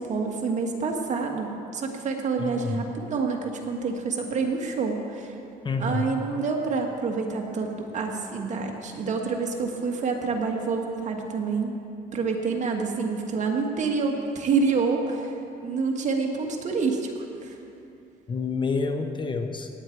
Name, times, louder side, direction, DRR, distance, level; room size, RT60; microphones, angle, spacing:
voice 1, 0.0-5.3 5.8-11.7 12.1-15.3 15.6-17.1 17.4-17.6, right 4 dB, 45° right, 2 dB, 1.9 m, -27 dB
voice 2, 2.4-2.8 5.6-6.1 18.3-19.7, left 4 dB, 30° left, 7 dB, 0.9 m, -28 dB
17.5 x 9.9 x 4.7 m, 2.7 s
cardioid pair, 110°, 17 cm